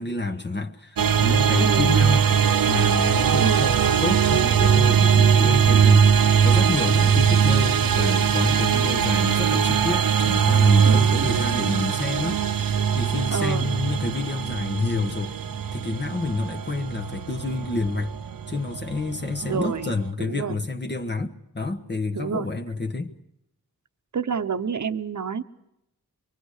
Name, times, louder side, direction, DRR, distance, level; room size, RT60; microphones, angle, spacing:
voice 1, 0.0-2.3 2.6-3.8 4.0-6.1 6.4-12.4 12.7-15.3 15.7-18.1 18.5-23.1, left 3 dB, 30° left, 1.3 m, -29 dB
sound 1, 1.0-20.1, right 7 dB, 70° right, 0.8 m, -21 dB
voice 2, 10.8-11.8 13.3-13.7 19.4-19.9 20.3-20.6 22.1-22.5 24.1-25.4, right 6 dB, 55° right, 1.1 m, -28 dB
24.5 x 23.5 x 6.6 m
wide cardioid pair, 85°, 35 cm